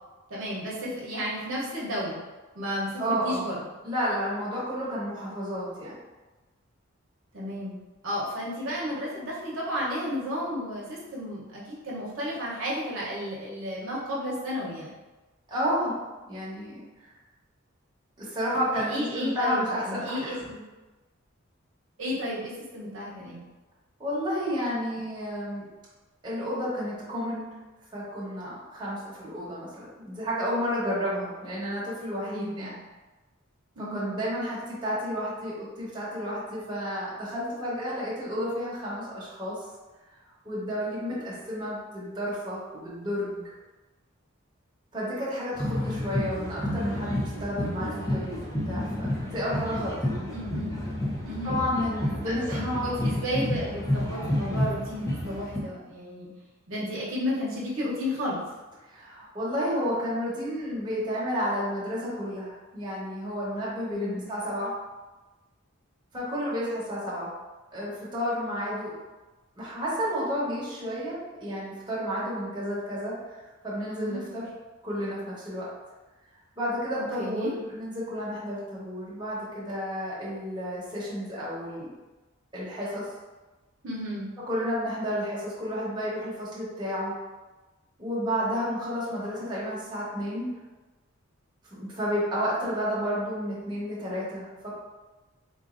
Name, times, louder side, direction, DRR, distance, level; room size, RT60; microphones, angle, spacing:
voice 1, 0.3-2.2 2.5-3.7 7.3-7.7 8.0-14.9 18.7-20.6 22.0-23.4 32.2-32.8 33.7-34.1 50.3-50.7 51.2-51.6 52.2-56.3 56.7-58.4 63.9-64.2 73.9-74.4 77.0-77.5 83.8-84.3, equal, 70° right, -6 dB, 0.8 m, -33 dB
voice 2, 3.0-3.4 3.8-5.9 15.5-16.0 16.3-16.8 18.2-20.4 24.0-25.6 26.2-27.6 27.9-32.7 33.8-39.6 40.4-43.4 44.9-50.3 51.4-52.9 58.8-64.7 66.1-67.3 67.7-68.9 69.6-74.4 74.8-75.7 76.6-81.9 82.5-83.0 84.5-87.1 88.0-90.5 91.7-94.8, equal, 20° right, -8 dB, 0.9 m, -31 dB
sound 1, 45.5-55.6, left 1 dB, 15° left, 0.4 m, -30 dB
3.9 x 2.5 x 2.5 m, 1.2 s
head